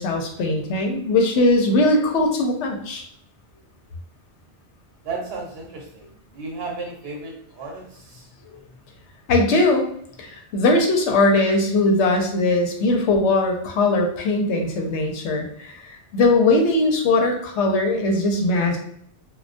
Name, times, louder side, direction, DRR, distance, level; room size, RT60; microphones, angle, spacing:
voice 1, 0.0-3.0 9.3-9.8 10.2-15.8 16.1-18.8, left 2 dB, 85° left, 2 dB, 0.9 m, -20 dB
voice 2, 5.0-8.3 8.7-8.8, right 3 dB, 65° right, -1 dB, 0.9 m, -34 dB
2.3 x 2.2 x 2.5 m, 0.66 s
omnidirectional pair, 1.2 m